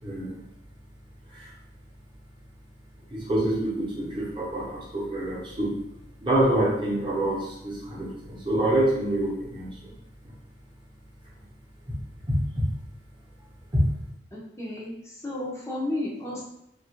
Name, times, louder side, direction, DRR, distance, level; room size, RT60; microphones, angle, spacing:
voice 1, 0.0-0.4 1.3-1.5 3.1-5.8 6.2-9.9 10.2-10.3 12.3-12.7 13.7-13.9, right 1 dB, 25° right, -5 dB, 0.8 m, -26 dB
voice 2, 14.3-16.4, left 1 dB, 15° left, -5 dB, 0.6 m, -33 dB
2.8 x 2.4 x 2.9 m, 0.79 s
head